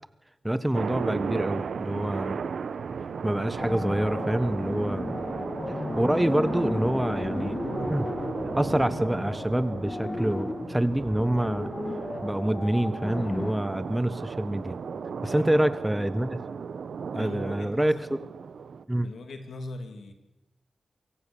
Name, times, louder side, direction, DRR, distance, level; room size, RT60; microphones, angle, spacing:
voice 1, 0.4-2.4 3.2-5.2 5.7-7.6 7.9-8.1 8.6-11.7 12.2-14.8 15.2-16.4 17.1-18.0 18.9-19.1, right 1 dB, 10° right, 15 dB, 1.1 m, -26 dB
sound 1, 0.7-18.8, right 6 dB, 85° right, 0.8 m, -36 dB
sound 2, 3.6-13.5, left 2 dB, 35° left, 1.6 m, -34 dB
voice 2, 15.3-15.7 17.1-18.2 19.0-20.1, left 2 dB, 85° left, 7 dB, 2.6 m, -40 dB
24.5 x 15.5 x 7.0 m, 0.94 s
cardioid pair, 70°, 0 cm